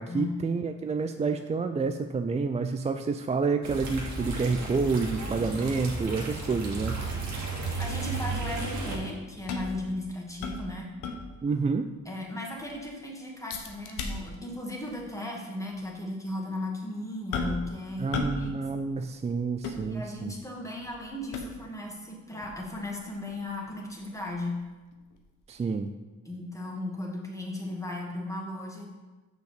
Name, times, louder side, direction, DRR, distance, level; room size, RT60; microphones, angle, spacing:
voice 1, 0.0-7.0 11.4-11.9 18.0-20.3 25.5-25.9, right 4 dB, 20° right, 7 dB, 0.4 m, -29 dB
sound 1, 3.6-9.0, right 3 dB, 65° right, 2.2 m, -34 dB
voice 2, 7.8-10.9 12.1-18.5 19.8-24.6 26.2-28.9, left 1 dB, 10° left, -2 dB, 2.0 m, -36 dB
sound 2, 9.3-11.6 12.0-12.1 12.4-12.8 13.5-14.6 14.9-15.1 15.7-15.9 17.3-17.8 18.1-18.5 18.8-20.4 20.8-21.8 22.4-25.2 25.6-25.7, left 4 dB, 90° left, 1.0 m, -37 dB
6.4 x 5.3 x 6.6 m, 1.2 s
cardioid pair, 90°, 30 cm